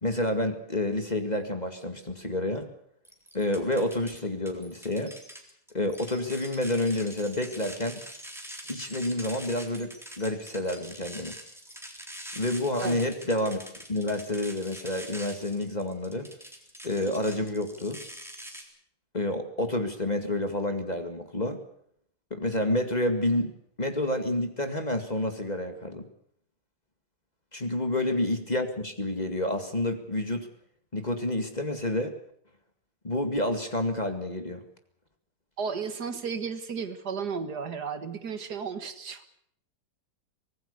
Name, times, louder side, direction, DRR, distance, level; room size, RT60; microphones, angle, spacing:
voice 1, 0.0-2.7 3.3-5.1 5.7-8.0 8.7-11.3 12.3-13.6 13.9-16.3 16.8-18.0 19.1-21.6 22.3-23.5 23.8-26.1 27.5-30.5 30.9-32.1 33.0-34.6, left 1 dB, 25° left, 7 dB, 2.1 m, -29 dB
sound 1, 3.1-4.1 4.5-18.6, equal, ahead, 3.7 m, -44 dB
voice 2, 12.8-13.1 35.6-39.3, right 6 dB, 70° right, 10 dB, 2.2 m, -34 dB
24.5 x 18.5 x 6.8 m, 0.67 s
omnidirectional pair, 1.8 m